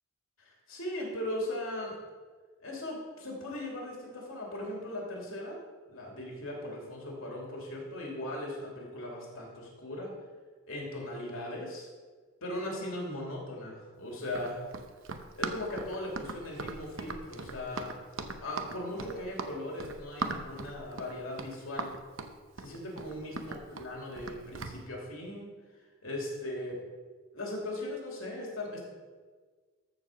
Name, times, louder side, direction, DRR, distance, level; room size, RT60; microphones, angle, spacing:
voice 1, 0.4-1.9 2.6-5.6 5.9-10.1 10.7-11.9 12.4-14.6 15.3-17.9 18.4-21.9 22.6-25.5 26.0-26.8 27.3-28.8, left 1 dB, 80° left, -2 dB, 2.8 m, -38 dB
Run, 14.3-24.8, right 3 dB, 70° right, 0.8 m, -39 dB
14.0 x 4.7 x 6.2 m, 1.5 s
head